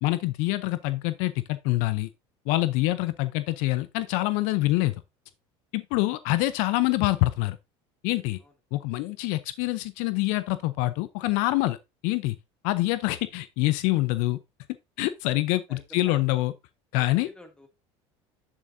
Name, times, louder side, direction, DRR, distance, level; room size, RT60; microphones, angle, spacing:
voice 1, 0.0-2.1 2.5-4.9 5.7-7.6 8.0-8.4 8.7-11.8 12.0-12.4 12.6-14.4 15.0-16.5 16.9-17.3, left 18 dB, 75° left, 0.6 m, -25 dB
voice 2, 15.7-16.2 17.2-17.7, left 1 dB, 5° left, 2.4 m, -49 dB
8.9 x 7.3 x 2.7 m
supercardioid pair, 105°, 13 cm